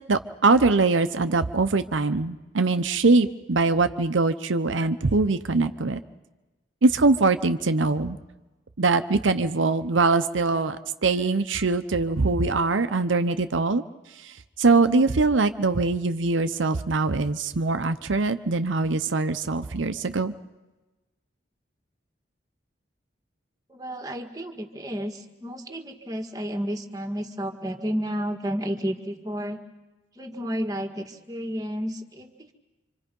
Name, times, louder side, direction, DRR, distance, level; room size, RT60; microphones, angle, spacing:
voice 1, 0.1-6.0 6.8-8.2 8.8-10.8 11.0-13.8 14.2-20.3, right 3 dB, 85° right, 10 dB, 0.8 m, -22 dB
voice 2, 23.7-29.6 30.1-32.5, equal, 20° right, 6 dB, 1.8 m, -31 dB
27.0 x 26.0 x 5.4 m, 1.1 s
head